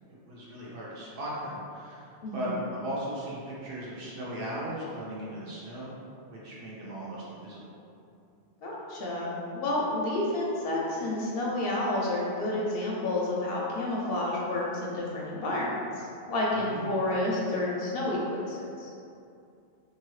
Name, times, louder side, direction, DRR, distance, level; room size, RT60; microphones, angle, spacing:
voice 1, 0.1-5.9 6.3-7.8 16.5-16.8, equal, 60° right, -7 dB, 0.8 m, -37 dB
voice 2, 2.2-2.5 8.6-18.9, left 1 dB, 65° left, -4 dB, 0.7 m, -30 dB
2.8 x 2.6 x 3.0 m, 2.5 s
omnidirectional pair, 1.2 m